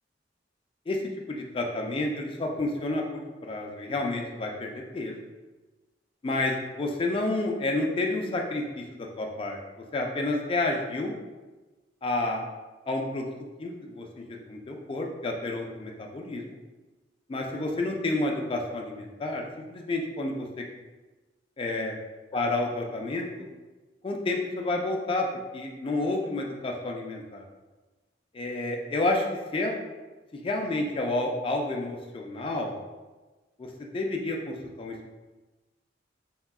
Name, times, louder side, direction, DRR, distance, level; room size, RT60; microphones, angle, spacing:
voice 1, 1.3-5.2 6.2-9.6 9.9-11.1 12.0-12.5 12.9-13.2 13.6-16.4 17.3-19.4 19.7-20.6 21.6-21.9 22.3-23.5 24.0-25.3 25.5-27.4 28.3-29.3 29.5-29.8 30.4-32.8 33.6-33.7 33.9-35.1, left 2 dB, 30° left, 1 dB, 0.3 m, -30 dB
3.5 x 2.2 x 2.3 m, 1.2 s
head